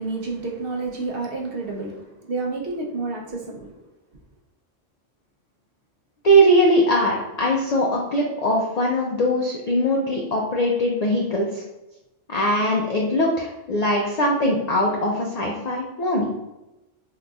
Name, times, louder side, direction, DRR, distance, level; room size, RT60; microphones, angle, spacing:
voice 1, 0.0-3.8, right 3 dB, 60° right, 0.7 m, -30 dB
voice 2, 6.2-11.6 12.3-16.3, equal, 75° left, 0.3 m, -21 dB
3.8 x 2.7 x 2.3 m
omnidirectional pair, 1.3 m